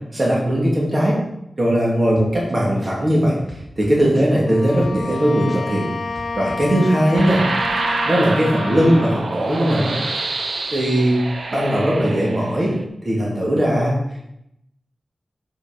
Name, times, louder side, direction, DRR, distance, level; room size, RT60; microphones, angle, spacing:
voice 1, 0.1-1.2 1.6-3.4 3.8-5.9 6.4-7.4 8.1-9.9 10.7-11.2 11.5-12.7 13.0-13.9, equal, 40° right, -4 dB, 2.6 m, -18 dB
sound 1, 2.2-2.5 2.8-5.2 5.5-7.3, left 1 dB, 5° right, 2.0 m, -36 dB
Bowed string instrument, 4.4-9.3, left 4 dB, 75° left, 0.5 m, -30 dB
sound 2, 7.1-12.8, right 3 dB, 80° right, 0.9 m, -27 dB
7.2 x 6.8 x 5.3 m, 0.80 s
wide cardioid pair, 100°, 0 cm